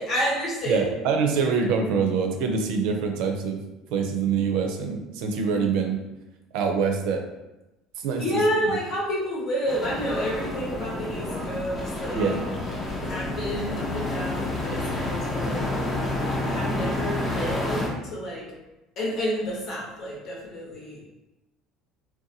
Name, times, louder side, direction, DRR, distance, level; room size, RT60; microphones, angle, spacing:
voice 1, 0.0-0.9 8.2-12.4 13.1-15.6 16.4-18.4 19.0-21.0, equal, 55° left, -3 dB, 1.0 m, -29 dB
voice 2, 0.7-3.6 3.9-6.0 6.5-7.2 8.0-8.4 12.1-12.6 13.0-13.4, right 5 dB, 75° right, 3 dB, 0.4 m, -25 dB
sound 1, 9.7-17.9, left 2 dB, 30° left, 0.7 m, -29 dB
2.7 x 2.2 x 2.6 m, 0.98 s
supercardioid pair, 90°, 0 cm